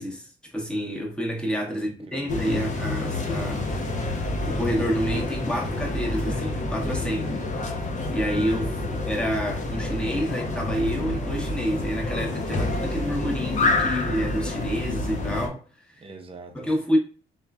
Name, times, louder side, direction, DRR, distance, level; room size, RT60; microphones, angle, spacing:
voice 1, 0.0-3.7 4.5-7.4 8.1-15.6 15.9-16.0 16.5-17.0, equal, 5° left, 0.9 m, -28 dB
voice 2, 1.7-2.3 3.6-4.1 7.2-7.9 8.8-9.0 16.0-16.7, right 3 dB, 30° right, 0.6 m, -45 dB
sound 1, 2.3-15.5, left 2 dB, 40° left, 0.7 m, -28 dB
2.9 x 2.3 x 2.3 m
cardioid pair, 90°, 20 cm